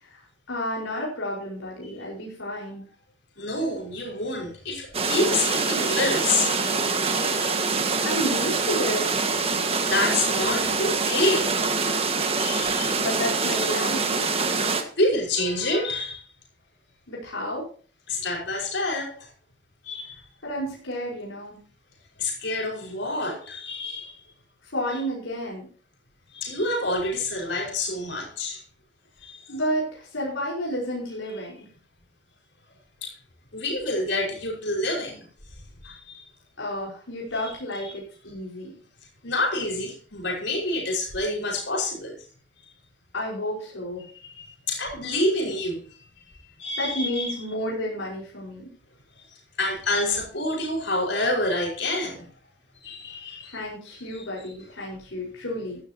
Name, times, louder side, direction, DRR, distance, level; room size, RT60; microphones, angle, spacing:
voice 1, 0.0-2.9 7.7-9.2 13.0-14.3 17.1-17.7 20.4-21.6 24.6-25.7 29.5-31.5 36.6-38.7 43.1-44.0 46.8-48.7 53.4-55.8, equal, 85° left, 5.0 m, -31 dB
voice 2, 3.4-7.6 9.8-11.5 12.4-13.0 13.5-13.7 15.0-16.2 18.1-19.1 19.8-20.2 22.2-24.1 26.3-28.6 29.2-29.3 33.0-33.1 33.5-35.2 35.8-36.2 37.4-37.6 37.8-37.9 39.2-42.2 44.2-45.8 46.6-47.3 49.6-52.3 52.8-53.6 53.9-54.2, left 2 dB, 65° left, 5.4 m, -27 dB
sound 1, 4.9-14.8, right 4 dB, 30° right, 1.7 m, -25 dB
15.5 x 13.0 x 2.9 m
head